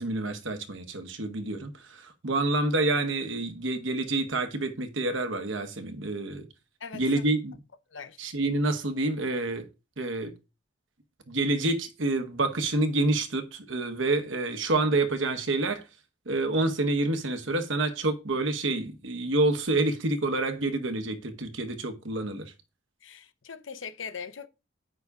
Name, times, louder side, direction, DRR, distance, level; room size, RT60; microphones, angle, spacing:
voice 1, 0.0-6.5 6.9-7.6 8.2-9.7 10.0-10.3 11.3-15.8 16.3-22.5, right 2 dB, 85° right, 1.2 m, -28 dB
voice 2, 6.8-7.2 7.9-8.2 23.0-24.5, left 6 dB, 80° left, 0.8 m, -41 dB
8.2 x 5.9 x 3.6 m
head